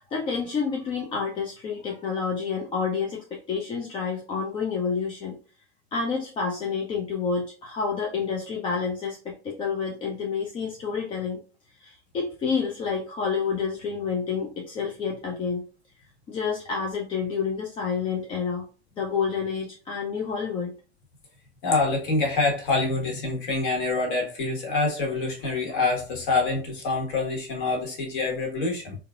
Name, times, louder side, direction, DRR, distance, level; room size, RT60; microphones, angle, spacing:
voice 1, 0.0-5.3 5.9-11.4 11.8-15.6 16.3-18.6 19.0-20.7, left 5 dB, 15° left, 0 dB, 0.4 m, -29 dB
voice 2, 21.6-29.0, left 3 dB, 50° left, -1 dB, 1.4 m, -26 dB
3.8 x 2.4 x 2.4 m, 0.36 s
figure-of-eight pair, 85°, 32 cm